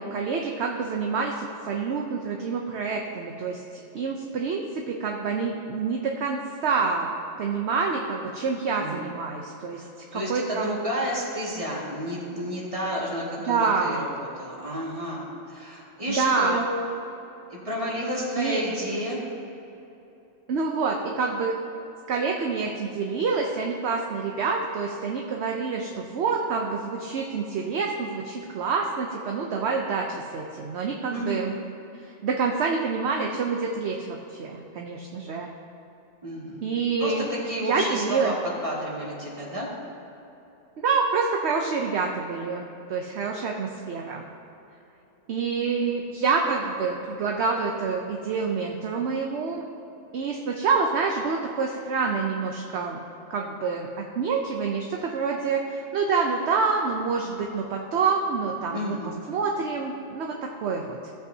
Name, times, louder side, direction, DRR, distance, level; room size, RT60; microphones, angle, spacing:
voice 1, 0.0-3.6 3.9-7.1 7.4-9.8 10.1-10.8 13.5-14.0 16.2-16.6 18.3-18.6 20.5-21.5 22.1-31.5 32.0-35.5 36.6-37.3 37.7-38.3 40.8-44.2 45.3-49.6 50.1-53.0 53.3-53.9 54.2-59.0 59.3-61.1, right 5 dB, 60° right, 1 dB, 0.9 m, -27 dB
voice 2, 9.8-16.6 17.5-19.2 31.1-31.4 36.2-36.6 37.0-39.7 58.7-59.2, equal, 25° right, -5 dB, 2.1 m, -31 dB
16.0 x 8.1 x 2.7 m, 3.0 s
omnidirectional pair, 1.3 m